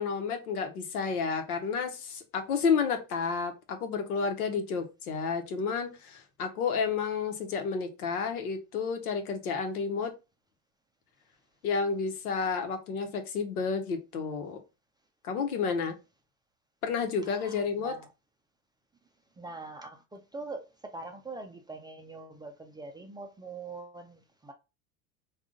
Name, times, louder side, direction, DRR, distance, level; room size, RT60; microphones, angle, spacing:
voice 1, 0.0-10.1 11.6-14.6 15.2-15.9 16.8-17.9, left 5 dB, 85° left, 1.0 m, -31 dB
voice 2, 17.3-18.1 19.4-24.5, right 3 dB, 10° right, 0.3 m, -43 dB
3.6 x 2.4 x 3.6 m
hypercardioid pair, 85°, 43 cm